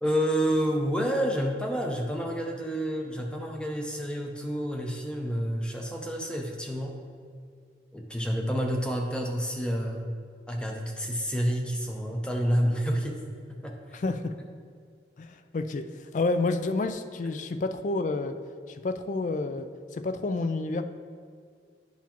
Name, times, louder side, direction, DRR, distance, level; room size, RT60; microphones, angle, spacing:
voice 1, 0.0-7.0 7.9-10.1 10.5-13.2 13.6-14.0, equal, 5° left, 1 dB, 0.6 m, -29 dB
voice 2, 13.9-14.3 15.2-18.4 18.7-20.8, left 3 dB, 45° left, 9 dB, 0.3 m, -29 dB
9.3 x 5.7 x 3.0 m, 2.1 s
head